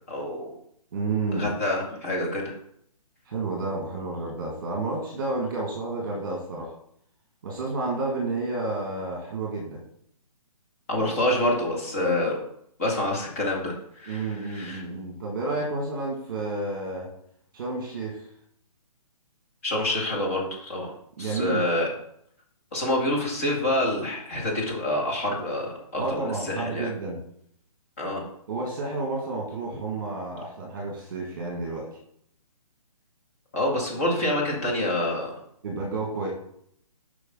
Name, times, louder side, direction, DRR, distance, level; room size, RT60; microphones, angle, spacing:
voice 1, 0.1-0.5 1.3-2.5 10.9-12.4 12.8-14.8 19.6-20.9 21.2-21.9 22.7-26.9 28.0-28.2 33.5-35.3, left 1 dB, 25° left, -3 dB, 1.9 m, -27 dB
voice 2, 0.9-1.5 3.3-6.7 7.4-9.8 14.1-17.1 17.5-18.2 21.2-21.7 26.0-27.2 28.5-31.9 35.6-36.3, right 3 dB, 35° right, -2 dB, 1.7 m, -30 dB
8.2 x 5.3 x 3.7 m, 0.69 s
hypercardioid pair, 175°, 19 cm